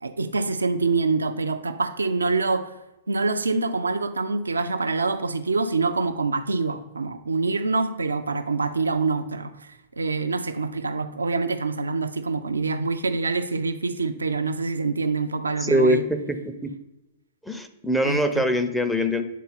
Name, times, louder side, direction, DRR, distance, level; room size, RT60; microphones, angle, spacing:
voice 1, 0.0-2.7 3.1-16.0 18.0-18.5, right 3 dB, 75° right, 10 dB, 0.4 m, -25 dB
voice 2, 15.6-16.7 17.4-19.3, equal, ahead, 6 dB, 0.5 m, -23 dB
8.2 x 3.9 x 4.0 m, 0.97 s
figure-of-eight pair, 105°, 0 cm